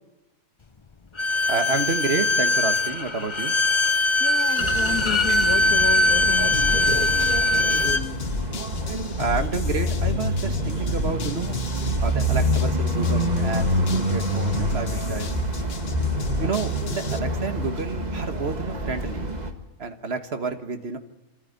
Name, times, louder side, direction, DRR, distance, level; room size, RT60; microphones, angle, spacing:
Bowed string instrument, 1.2-8.0, left 2 dB, 30° left, 0.6 m, -21 dB
voice 1, 1.5-3.6 9.2-11.6 12.0-15.4 16.4-19.3 19.8-21.0, right 4 dB, 40° right, 8 dB, 1.7 m, -29 dB
voice 2, 4.2-8.2, left 7 dB, 70° left, 8 dB, 1.7 m, -33 dB
sound 1, 4.6-19.5, equal, 25° right, 1.9 m, -27 dB
sound 2, 6.5-17.2, left 5 dB, 45° left, 1.1 m, -33 dB
24.5 x 14.5 x 9.5 m, 1.1 s
omnidirectional pair, 1.6 m